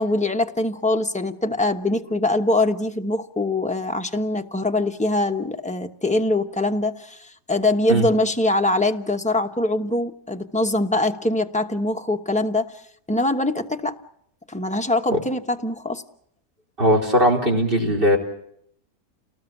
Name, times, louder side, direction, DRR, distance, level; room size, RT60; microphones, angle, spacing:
voice 1, 0.0-12.7 13.1-14.0 14.5-16.0, left 2 dB, 5° left, 4 dB, 0.9 m, -23 dB
voice 2, 16.8-18.2, equal, 40° right, -1 dB, 4.1 m, -19 dB
29.5 x 19.0 x 7.2 m, 0.72 s
omnidirectional pair, 1.5 m